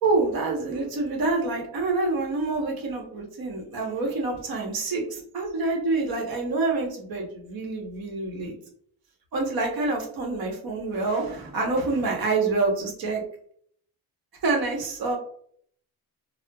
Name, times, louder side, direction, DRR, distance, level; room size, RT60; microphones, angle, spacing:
voice 1, 0.0-8.5 9.3-13.2 14.4-15.2, right 3 dB, 60° right, 0 dB, 1.1 m, -27 dB
4.2 x 2.1 x 2.2 m, 0.63 s
cardioid pair, 95°, 40 cm